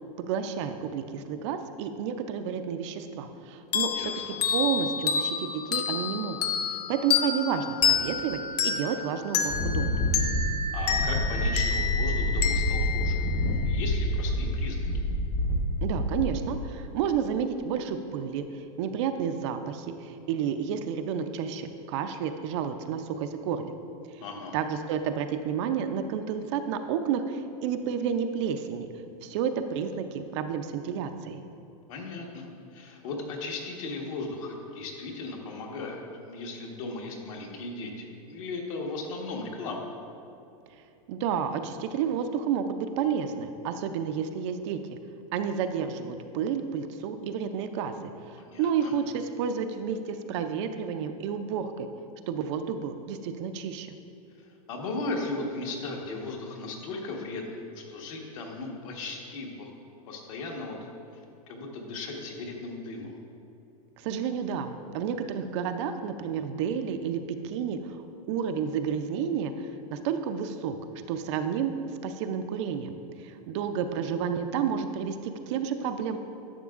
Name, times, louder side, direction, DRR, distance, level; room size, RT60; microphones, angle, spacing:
voice 1, 0.2-6.4 6.9-10.0 15.8-23.7 24.5-28.9 29.2-31.4 41.1-44.8 45.3-51.9 52.3-53.9 64.0-70.8 71.1-71.7 72.0-72.9 73.2-76.2, right 7 dB, 50° right, 8 dB, 0.5 m, -31 dB
sound 1, 3.7-14.0, left 6 dB, 85° left, 0.8 m, -29 dB
voice 2, 3.9-4.4 10.7-14.9 24.2-24.6 31.9-39.9 48.4-48.9 54.7-59.7 60.0-60.8 61.1-61.2 61.5-63.1, left 3 dB, 60° left, 0 dB, 1.4 m, -37 dB
Wind, 9.4-16.6, left 1 dB, 40° left, 0.9 m, -28 dB
11.0 x 6.7 x 2.4 m, 2.7 s
supercardioid pair, 145°, 19 cm